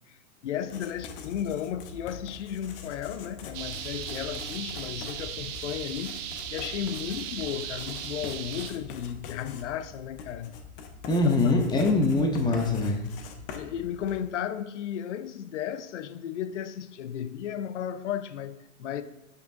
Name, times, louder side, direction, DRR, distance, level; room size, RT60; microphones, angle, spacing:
voice 1, 0.4-6.2 6.5-10.6 11.2-11.5 13.5-19.0, left 9 dB, 55° left, 0.6 m, -34 dB
Writing, 0.6-14.4, left 5 dB, 40° left, 1.0 m, -44 dB
sound 1, 3.5-8.7, right 9 dB, 25° right, 0.6 m, -37 dB
voice 2, 11.1-13.0, left 2 dB, 10° left, 1.0 m, -23 dB
10.5 x 5.4 x 2.7 m
figure-of-eight pair, 105°, 43 cm